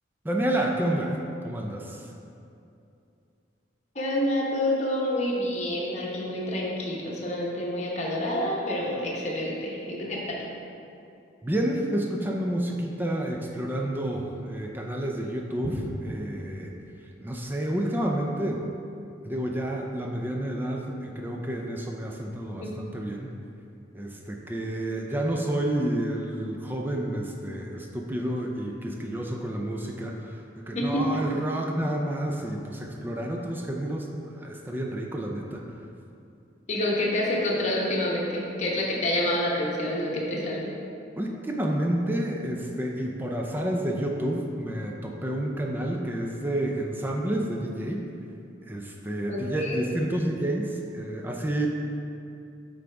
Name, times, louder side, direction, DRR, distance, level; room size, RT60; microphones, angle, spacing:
voice 1, 0.2-1.2 1.4-2.1 11.4-15.8 16.0-16.7 17.2-18.6 19.2-23.3 23.9-34.1 34.4-35.6 41.2-48.0 48.6-51.7, right 1 dB, 10° right, 0 dB, 0.4 m, -29 dB
voice 2, 3.9-10.4 22.6-22.7 30.7-31.2 36.7-40.7 49.3-49.8, left 1 dB, 35° left, -4 dB, 1.0 m, -28 dB
8.2 x 3.9 x 3.4 m, 2.7 s
head